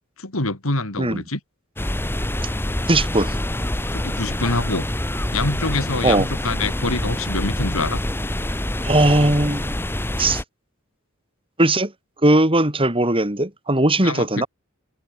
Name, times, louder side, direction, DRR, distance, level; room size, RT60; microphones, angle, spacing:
voice 1, 0.2-1.4 3.9-4.9 5.3-8.0 14.0-14.5, left 2 dB, 70° left, 4.3 m, -25 dB
sound 1, 1.8-10.4, left 1 dB, 10° left, 1.1 m, -26 dB
voice 2, 2.9-3.3 6.0-6.3 8.8-9.8 10.2-10.4 11.6-11.9 12.2-14.5, right 1 dB, 25° right, 4.2 m, -19 dB
head